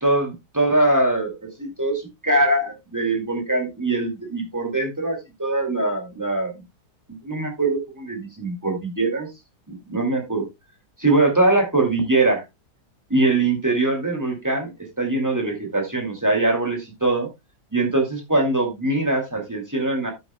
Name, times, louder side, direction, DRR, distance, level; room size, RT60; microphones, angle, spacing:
voice 1, 0.0-6.6 7.2-9.3 9.7-10.5 11.0-12.4 13.1-17.3 17.7-20.1, right 2 dB, 10° right, 2 dB, 2.4 m, -22 dB
12.0 x 9.0 x 2.2 m, 0.22 s
omnidirectional pair, 1.8 m